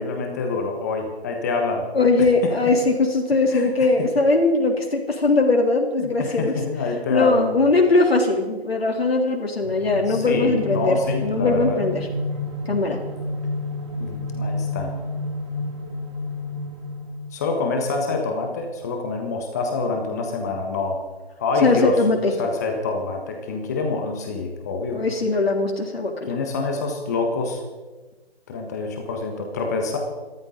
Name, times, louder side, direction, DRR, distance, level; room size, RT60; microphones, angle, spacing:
voice 1, 0.0-1.8 2.2-2.7 3.5-4.1 6.0-7.5 10.1-11.8 14.0-14.9 17.3-21.0 21.4-22.0 22.4-25.0 26.3-27.6 28.5-30.0, left 3 dB, 15° left, 2 dB, 1.4 m, -26 dB
voice 2, 1.9-6.6 7.1-12.0 12.6-13.0 21.6-22.3 24.9-26.3, left 3 dB, 70° left, 0 dB, 3.4 m, -20 dB
sound 1, 9.6-17.5, left 2 dB, 25° right, 1.9 m, -30 dB
25.5 x 13.5 x 3.9 m, 1.3 s
figure-of-eight pair, 155°, 31 cm